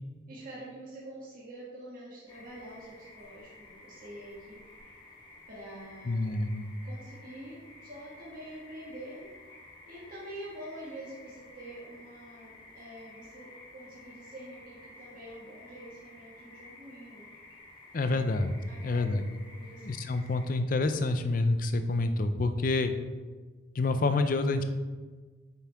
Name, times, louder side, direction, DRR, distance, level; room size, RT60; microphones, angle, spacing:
voice 1, 0.3-4.6 5.5-6.3 6.8-9.2 9.8-17.3 18.7-19.2 19.5-19.9 20.3-20.4, right 1 dB, 45° right, -8 dB, 2.0 m, -46 dB
sound 1, 2.3-20.5, left 2 dB, 25° left, 1.4 m, -53 dB
voice 2, 6.1-6.7 17.9-18.5 18.8-19.2 19.8-22.9 23.7-24.6, left 2 dB, 45° left, 9 dB, 0.5 m, -28 dB
8.9 x 5.5 x 3.5 m, 1.4 s
head